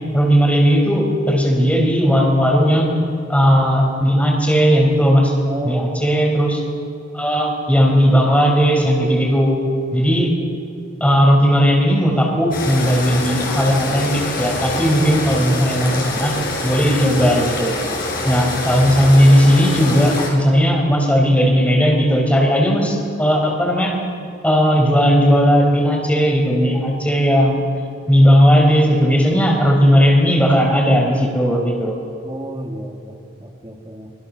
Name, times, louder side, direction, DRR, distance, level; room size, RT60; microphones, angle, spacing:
voice 1, 0.1-2.9 3.3-5.3 5.6-6.6 7.1-9.6 9.9-10.3 11.0-16.4 16.6-17.7 18.2-23.9 24.4-27.7 28.1-31.9, equal, 5° left, 1 dB, 4.4 m, -16 dB
voice 2, 5.5-6.2 32.2-34.1, right 1 dB, 20° right, 3 dB, 2.3 m, -31 dB
sound 1, 12.5-20.3, left 2 dB, 50° left, 5.6 m, -25 dB
25.5 x 21.0 x 6.7 m, 2.7 s
head